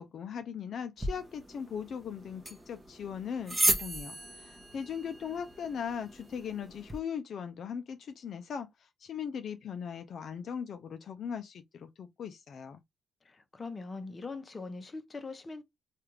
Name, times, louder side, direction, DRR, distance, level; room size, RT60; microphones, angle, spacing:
voice 1, 0.0-12.8, left 7 dB, 60° left, 0.3 m, -39 dB
sound 1, 1.0-7.0, right 2 dB, 15° right, 0.8 m, -35 dB
voice 2, 13.2-15.6, left 3 dB, 30° left, 0.7 m, -41 dB
3.2 x 2.3 x 3.0 m
cardioid pair, 105°, 0 cm